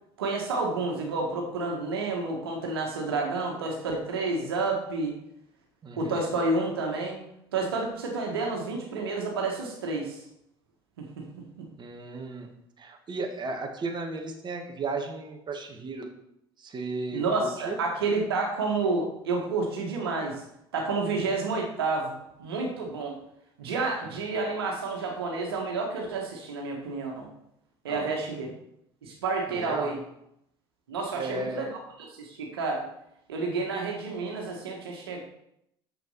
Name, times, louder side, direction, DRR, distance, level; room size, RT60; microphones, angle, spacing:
voice 1, 0.2-5.1 6.0-7.2 7.5-10.2 11.0-11.2 11.6-11.7 17.1-20.4 20.7-22.1 22.4-23.2 23.6-27.3 27.8-28.5 29.0-30.0 30.9-31.7 32.0-32.8 33.3-35.2, right 3 dB, 85° right, 0 dB, 1.6 m, -30 dB
voice 2, 5.8-6.2 11.8-12.5 12.8-16.1 16.6-17.8 27.9-28.1 29.5-30.0 31.1-31.6, right 3 dB, 35° right, 3 dB, 1.6 m, -35 dB
7.1 x 5.9 x 5.6 m, 0.78 s
hypercardioid pair, 65°, 12 cm